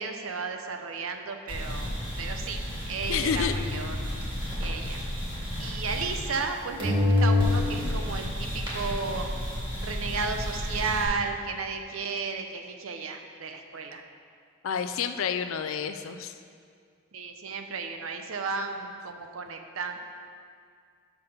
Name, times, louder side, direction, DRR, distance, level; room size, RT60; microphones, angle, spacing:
voice 1, 0.0-1.9 2.2-4.0 4.6-5.0 5.6-9.3 9.8-14.0 17.1-20.0, right 4 dB, 75° right, 5 dB, 0.7 m, -33 dB
sound 1, 1.5-6.5 6.8-11.0, left 1 dB, 25° right, 2.1 m, -29 dB
voice 2, 3.1-3.5 14.6-16.3, left 7 dB, 70° left, 9 dB, 0.4 m, -29 dB
5.9 x 5.7 x 6.6 m, 2.2 s
head